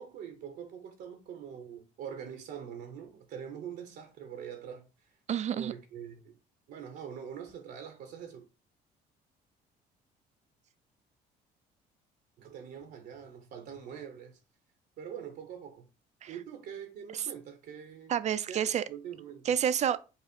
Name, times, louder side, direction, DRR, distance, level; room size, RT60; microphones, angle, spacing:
voice 1, 0.0-5.1 5.5-6.4 6.7-8.4 12.4-14.4 15.0-15.9 16.3-18.1 18.4-19.6, right 8 dB, 70° right, 0.9 m, -44 dB
voice 2, 5.3-5.7 16.2-16.3 18.1-18.8 19.5-20.0, right 9 dB, 45° right, 0.4 m, -29 dB
5.5 x 2.1 x 4.3 m
cardioid pair, 110°, 17 cm